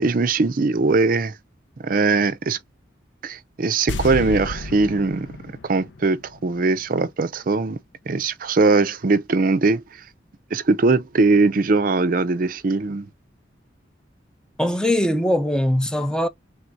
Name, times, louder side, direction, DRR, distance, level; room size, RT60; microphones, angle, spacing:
voice 1, 0.0-1.4 1.8-2.6 3.2-5.3 5.6-7.8 8.1-9.8 10.5-13.1, right 3 dB, 45° right, 0.5 m, -20 dB
sound 1, 3.9-7.1 7.3-7.4, left 2 dB, 75° left, 0.5 m, -32 dB
voice 2, 14.6-16.3, left 1 dB, 5° left, 0.5 m, -21 dB
3.4 x 2.5 x 4.5 m
head